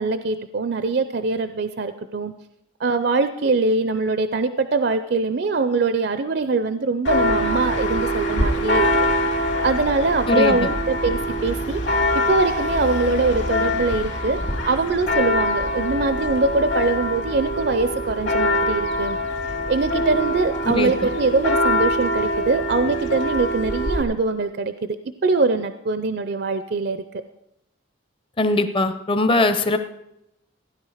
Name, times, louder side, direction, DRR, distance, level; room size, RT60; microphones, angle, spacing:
voice 1, 0.0-2.3 2.8-8.9 9.6-11.8 12.1-19.2 19.7-24.7 25.2-27.2, right 3 dB, 55° right, 11 dB, 0.5 m, -23 dB
Church bell, 7.0-24.0, left 1 dB, 65° left, 2.5 m, -23 dB
voice 2, 10.3-10.7 20.6-21.1 28.4-29.8, left 2 dB, 25° left, 9 dB, 0.7 m, -21 dB
15.5 x 10.5 x 4.9 m, 0.84 s
head